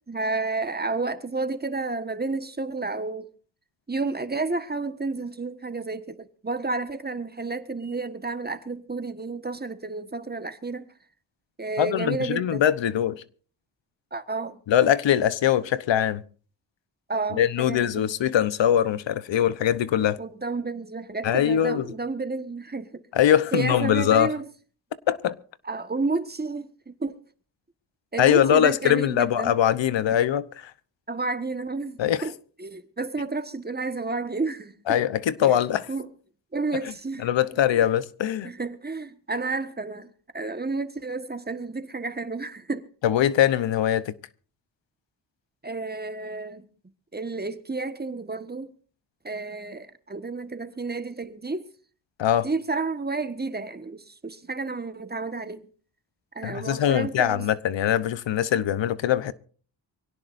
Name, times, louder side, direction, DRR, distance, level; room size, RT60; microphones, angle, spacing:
voice 1, 0.1-3.3 3.9-10.9 11.6-12.6 14.1-14.6 15.2-15.3 17.1-18.1 20.2-23.0 23.5-24.5 25.6-27.2 28.1-29.5 31.1-32.3 32.6-35.0 35.4-35.6 35.9-36.1 36.5-37.3 37.7-37.8 38.4-40.1 40.3-42.9 45.6-46.6 47.1-48.7 49.2-51.7 52.4-55.7 56.3-57.5, right 3 dB, 20° right, 1.5 m, -31 dB
voice 2, 11.8-13.2 14.7-16.2 17.3-20.2 21.2-21.9 23.1-24.3 25.1-25.4 28.2-30.7 32.0-32.2 34.9-35.9 37.2-38.5 43.0-44.1 52.2-52.5 56.4-59.3, left 10 dB, 80° left, 1.0 m, -22 dB
24.5 x 17.5 x 2.6 m
cardioid pair, 75°, 45 cm